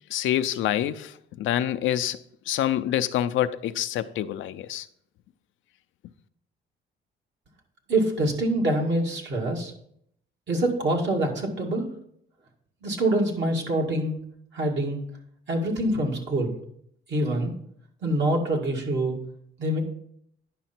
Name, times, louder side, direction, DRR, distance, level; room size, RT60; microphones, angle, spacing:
voice 1, 0.1-1.1 1.4-2.2 2.5-4.8, left 11 dB, 75° left, 0.5 m, -26 dB
voice 2, 7.9-9.7 10.5-11.9 12.8-14.2 14.5-15.0 15.5-16.5 17.1-17.5 18.0-19.2 19.6-19.8, right 1 dB, 65° right, 2.2 m, -25 dB
10.0 x 5.7 x 4.4 m
cardioid pair, 90°, 20 cm